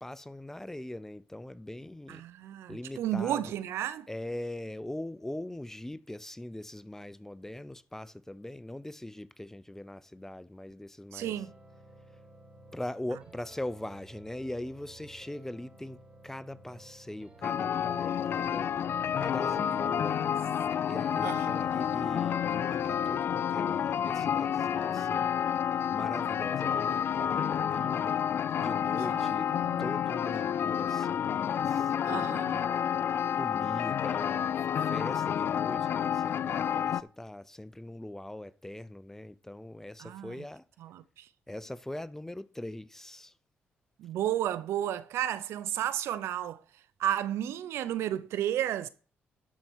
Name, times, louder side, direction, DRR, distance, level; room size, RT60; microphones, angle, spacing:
voice 1, 0.0-2.2 2.7-3.4 4.1-11.3 12.7-18.7 19.2-20.2 20.7-25.3 25.9-28.2 28.6-29.5 29.8-32.5 33.3-40.6 41.5-43.3, left 1 dB, 10° left, 0.5 m, -41 dB
voice 2, 2.1-4.1 11.1-11.5 19.6-20.3 21.2-21.6 29.1-29.3 29.6-29.9 32.1-32.7 40.0-40.4 40.8-41.3 44.0-46.6 47.0-48.9, right 11 dB, 80° right, 0.6 m, -33 dB
sound 1, 11.2-27.2, right 2 dB, 25° right, 2.9 m, -54 dB
sound 2, 17.4-37.0, left 9 dB, 60° left, 0.4 m, -30 dB
12.0 x 4.3 x 6.2 m
cardioid pair, 75°, 4 cm